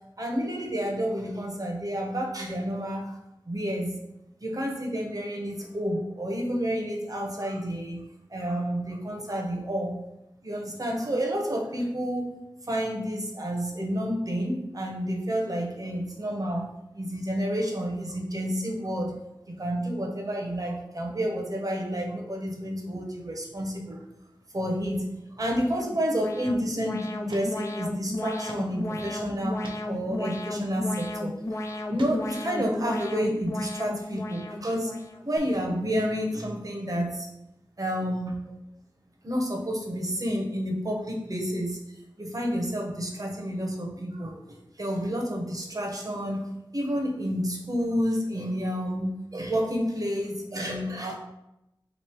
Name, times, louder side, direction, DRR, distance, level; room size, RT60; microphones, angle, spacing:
voice 1, 0.2-3.2 3.5-4.0 4.4-9.9 10.4-12.3 12.6-19.2 19.5-24.0 24.5-25.0 25.3-31.6 31.9-34.9 35.2-37.3 37.8-38.5 39.2-41.8 42.2-44.4 44.8-46.5 46.7-51.2, equal, 45° right, 0 dB, 0.9 m, -30 dB
Alarm, 25.5-35.4, left 1 dB, 35° left, 0.4 m, -34 dB
sound 1, 26.6-26.7 27.3-27.5 27.8-27.9 28.5-28.7 29.1-29.2 29.6-29.8 30.9-31.1 31.7-32.5, right 1 dB, 75° right, 0.6 m, -42 dB
3.1 x 2.7 x 4.5 m, 0.89 s
cardioid pair, 45°, 9 cm